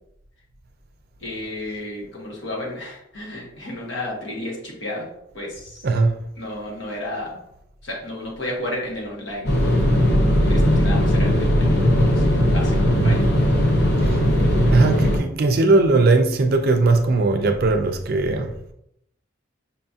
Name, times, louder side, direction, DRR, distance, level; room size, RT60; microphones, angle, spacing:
voice 1, 1.2-5.1 5.3-5.9 6.4-7.4 7.8-9.5 10.5-13.2, left 1 dB, 75° left, 1.2 m, -32 dB
voice 2, 5.8-6.2 13.0-13.2 14.1-14.2 14.7-18.5, right 3 dB, 55° right, 0.4 m, -18 dB
sound 1, 9.4-15.2, equal, 60° left, 0.7 m, -18 dB
5.6 x 2.7 x 2.3 m
head